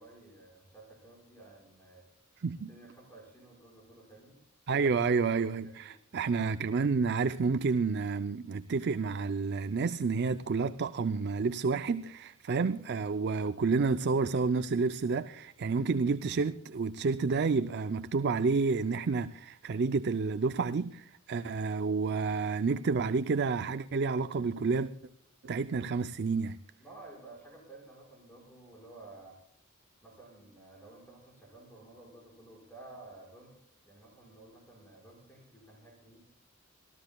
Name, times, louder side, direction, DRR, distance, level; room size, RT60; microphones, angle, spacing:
voice 1, 0.0-2.0 2.7-4.4 4.8-5.9 26.8-29.4 30.0-33.6 33.9-36.3, right 2 dB, 10° left, 5.6 m, -53 dB
voice 2, 4.7-24.9 25.4-26.6, right 4 dB, 50° right, 0.5 m, -30 dB
26.5 x 14.0 x 2.3 m
head